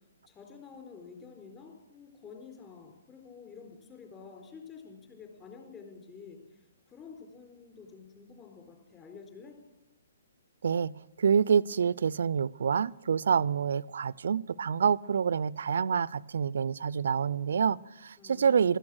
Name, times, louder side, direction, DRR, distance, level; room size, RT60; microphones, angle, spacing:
voice 1, 0.3-9.6 18.2-18.8, left 5 dB, 20° left, 3 dB, 4.3 m, -49 dB
voice 2, 10.6-18.8, right 7 dB, 65° right, 22 dB, 0.4 m, -27 dB
15.5 x 13.5 x 6.4 m, 1.0 s
figure-of-eight pair, 130°, 0 cm